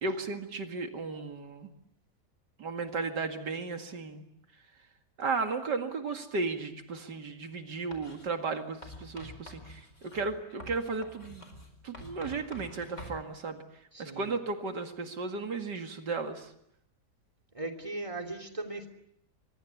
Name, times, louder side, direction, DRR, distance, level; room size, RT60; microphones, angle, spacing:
voice 1, 0.0-1.7 2.6-4.2 5.2-11.5 11.8-13.6 14.0-16.5, right 4 dB, 85° right, 6 dB, 2.6 m, -35 dB
Writing, 7.9-8.3 8.8-13.2, left 1 dB, 45° left, 4.9 m, -47 dB
voice 2, 13.9-14.3 17.5-18.9, right 2 dB, 20° right, 4 dB, 3.1 m, -38 dB
26.5 x 23.5 x 8.5 m, 0.75 s
omnidirectional pair, 1.8 m